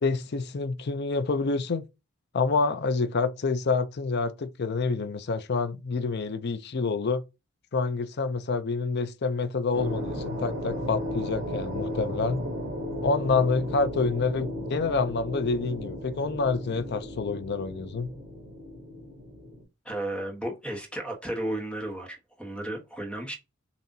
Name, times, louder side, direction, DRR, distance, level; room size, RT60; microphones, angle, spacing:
voice 1, 0.0-1.8 2.3-7.2 7.7-12.4 13.0-18.1, left 4 dB, 50° left, 0.5 m, -27 dB
sound 1, 9.7-19.6, equal, 50° right, 3.0 m, -35 dB
voice 2, 19.8-23.3, right 1 dB, 5° left, 1.2 m, -33 dB
7.1 x 2.7 x 2.7 m
head